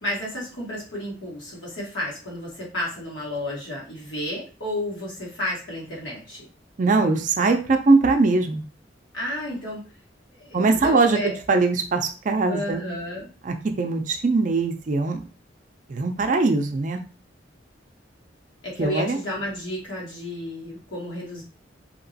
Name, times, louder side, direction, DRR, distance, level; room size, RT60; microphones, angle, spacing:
voice 1, 0.0-6.5 9.1-9.8 10.3-11.4 12.5-13.3 18.6-21.4, left 1 dB, 80° left, -4 dB, 1.5 m, -32 dB
voice 2, 6.8-8.6 10.5-12.8 13.4-15.2 15.9-17.0 18.8-19.2, right 3 dB, 45° right, 5 dB, 0.4 m, -21 dB
2.9 x 2.9 x 2.7 m, 0.36 s
head